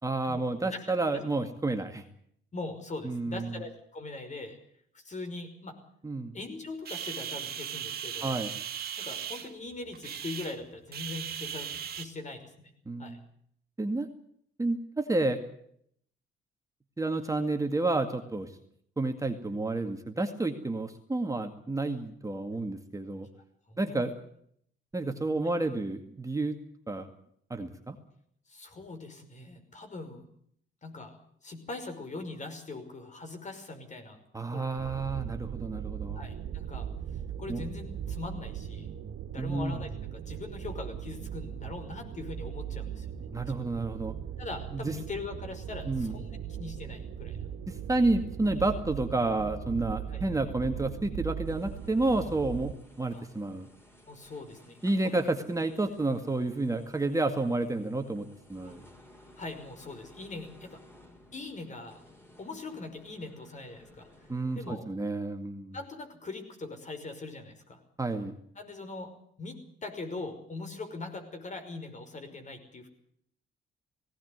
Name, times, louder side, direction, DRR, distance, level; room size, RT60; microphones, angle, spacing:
voice 1, 0.0-2.0 3.0-3.6 6.0-6.3 8.2-8.5 12.9-13.2 13.8-14.1 14.6-15.4 17.0-18.5 19.0-23.3 23.8-24.1 24.9-26.6 26.9-27.1 27.5-28.0 34.3-36.2 37.5-37.6 39.4-39.8 43.3-44.2 44.7-45.0 45.9-46.2 47.7-53.7 54.8-58.8 64.3-65.8 68.0-68.3, right 2 dB, 15° right, 5 dB, 2.1 m, -30 dB
voice 2, 2.5-4.6 4.9-5.8 6.3-8.4 9.0-12.7 13.0-13.2 23.7-24.1 28.5-30.2 30.8-31.1 31.4-34.2 34.5-34.8 36.1-36.9 37.4-38.9 39.3-43.1 43.5-43.7 44.4-46.3 46.6-47.4 50.1-50.2 53.1-53.2 54.1-55.2 58.7-58.8 59.4-60.8 61.3-62.0 62.4-64.1 64.5-64.8 65.7-67.8 68.6-69.1 69.4-72.9, left 3 dB, 35° left, 7 dB, 5.6 m, -41 dB
sound 1, 6.8-12.0, right 9 dB, 50° right, 2.5 m, -38 dB
sound 2, 34.8-52.7, right 9 dB, 70° right, 2.2 m, -39 dB
sound 3, 51.4-64.7, left 1 dB, 10° left, 5.4 m, -57 dB
18.0 x 17.5 x 9.5 m, 0.67 s
cardioid pair, 90°, 20 cm